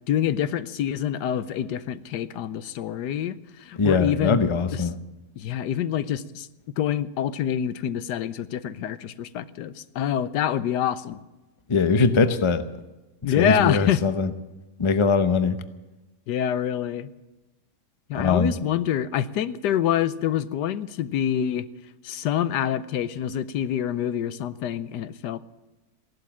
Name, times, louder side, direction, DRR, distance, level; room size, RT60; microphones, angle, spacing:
voice 1, 0.1-4.4 4.7-4.8 5.4-6.5 6.8-11.2 13.2-14.0 16.3-17.1 18.1-21.7 22.0-25.4, left 10 dB, 85° left, 14 dB, 1.3 m, -26 dB
voice 2, 3.8-5.0 11.7-12.6 13.2-14.3 14.8-15.6 18.1-18.5, left 4 dB, 35° left, 10 dB, 0.4 m, -21 dB
16.0 x 12.0 x 7.2 m, 1.1 s
omnidirectional pair, 1.8 m